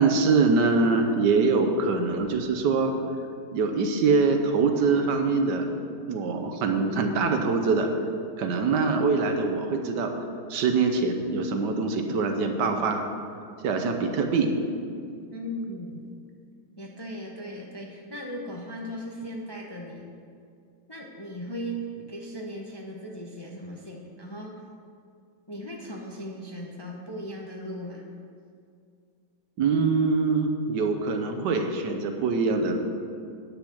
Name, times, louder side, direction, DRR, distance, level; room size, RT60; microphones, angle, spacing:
voice 1, 0.0-2.9 3.5-5.6 6.1-7.9 8.4-10.1 10.5-13.0 13.6-14.5 29.6-32.8, right 4 dB, 85° right, 5 dB, 1.5 m, -24 dB
voice 2, 15.3-16.0 16.8-20.0 20.9-24.5 25.5-28.0, equal, 25° left, -1 dB, 0.6 m, -37 dB
9.9 x 6.6 x 6.3 m, 2.3 s
omnidirectional pair, 1.8 m